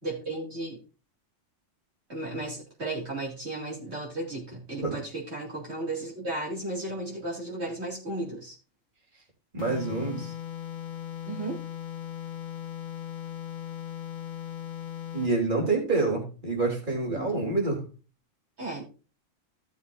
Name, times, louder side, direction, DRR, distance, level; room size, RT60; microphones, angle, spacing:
voice 1, 0.0-0.8 2.1-8.5 11.3-11.6 17.1-17.3 18.6-18.8, right 2 dB, 55° right, -5 dB, 3.2 m, -34 dB
voice 2, 9.5-10.3 15.1-17.8, right 3 dB, 40° right, 0 dB, 3.5 m, -27 dB
sound 1, 9.6-15.4, left 11 dB, 85° left, 1.5 m, -38 dB
16.0 x 7.1 x 2.6 m, 0.34 s
omnidirectional pair, 1.4 m